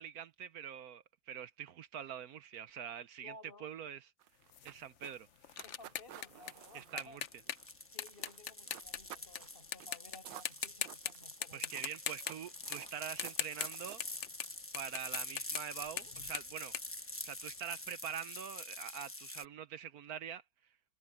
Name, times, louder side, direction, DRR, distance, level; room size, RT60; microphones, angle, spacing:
voice 1, 0.0-3.3 3.6-4.1 4.6-5.6 6.7-7.2 11.5-14.0 14.7-16.7 17.2-20.4, right 9 dB, 65° right, 1.0 m, -45 dB
voice 2, 3.2-3.7 5.6-7.2 7.9-11.8, left 2 dB, 30° left, 5.2 m, -56 dB
sound 1, 4.2-8.4 8.7-9.5 9.8-9.9 10.2-11.3 11.7-14.0, right 13 dB, 80° right, 1.4 m, -53 dB
sound 2, 4.5-9.4 9.7-10.2 10.5-11.1 11.4-17.8, left 9 dB, 60° left, 0.8 m, -41 dB
sound 3, 6.6-19.5, left 1 dB, 15° left, 0.6 m, -47 dB
omnidirectional pair, 2.0 m